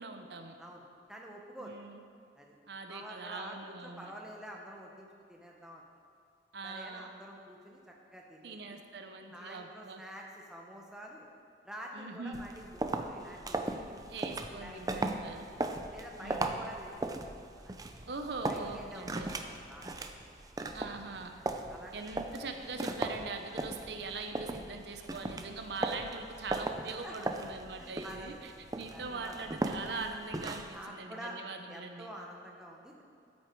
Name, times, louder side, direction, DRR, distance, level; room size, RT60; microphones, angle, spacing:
voice 1, 0.0-0.6 1.6-2.0 2.7-4.1 6.5-7.1 8.4-10.0 11.9-12.4 14.1-15.5 16.2-16.7 18.1-19.4 20.7-21.4 21.9-32.1, right 3 dB, 65° right, 5 dB, 0.8 m, -42 dB
voice 2, 0.6-1.8 2.4-2.5 2.9-5.8 6.6-8.6 9.3-11.3 11.6-14.0 14.6-15.6 15.9-17.2 17.6-17.7 18.5-20.1 20.7-20.8 21.3-21.4 21.7-22.1 26.8-27.3 27.8-28.5 28.9-29.5 30.7-31.4 31.7-33.0, equal, 5° right, -1 dB, 1.1 m, -48 dB
sound 1, 12.3-30.8, right 2 dB, 20° right, 0.5 m, -38 dB
13.0 x 8.5 x 4.6 m, 2.4 s
head